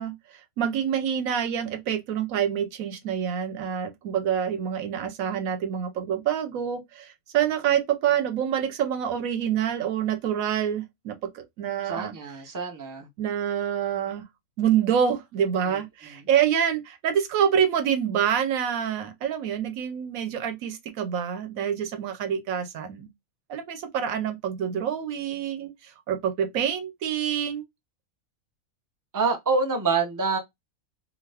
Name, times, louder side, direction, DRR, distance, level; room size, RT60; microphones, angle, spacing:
voice 1, 0.0-12.1 13.2-14.2 14.6-23.1 23.5-27.6, right 9 dB, 80° right, 1.1 m, -27 dB
voice 2, 11.8-13.1 29.1-30.4, right 4 dB, 25° right, 0.4 m, -26 dB
2.6 x 2.4 x 3.3 m
omnidirectional pair, 1.4 m